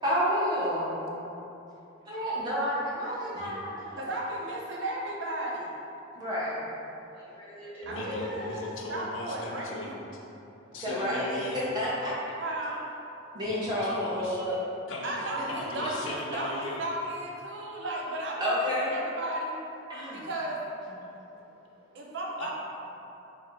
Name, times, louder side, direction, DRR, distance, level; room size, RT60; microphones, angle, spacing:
voice 1, 0.0-1.1 2.1-4.1 6.2-6.7 7.9-8.5 10.8-11.2 11.5-12.1 13.3-14.6 18.4-18.9 19.9-20.3, equal, 20° right, -8 dB, 0.6 m, -30 dB
voice 2, 4.0-5.7 7.9-8.5 8.9-10.0 12.4-12.8 15.0-19.6 20.1-20.6 21.9-22.5, right 1 dB, 65° right, -2 dB, 0.6 m, -34 dB
voice 3, 6.9-8.2 10.3-10.8 13.2-13.6 17.5-17.8 19.9-20.3 21.0-22.2, equal, 25° left, -11 dB, 1.1 m, -48 dB
voice 4, 7.8-10.0 10.7-11.6 13.4-14.4 14.9-15.2 15.5-16.8 22.4-22.5, left 2 dB, 75° left, -2 dB, 0.5 m, -39 dB
3.1 x 2.4 x 4.2 m, 2.9 s
head